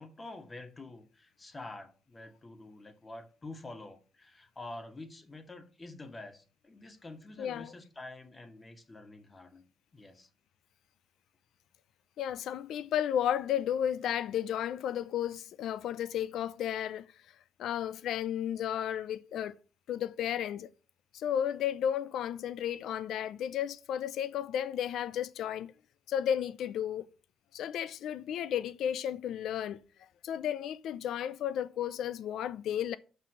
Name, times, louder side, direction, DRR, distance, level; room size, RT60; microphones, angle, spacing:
voice 1, 0.0-9.7 9.9-10.3, left 2 dB, 25° left, 2.0 m, -47 dB
voice 2, 7.4-7.7 12.2-17.1 17.6-19.6 19.9-20.7 21.1-25.7 26.1-27.1 27.5-29.8 30.2-33.0, left 10 dB, 80° left, 0.6 m, -33 dB
6.0 x 5.7 x 7.1 m
cardioid pair, 90°, 0 cm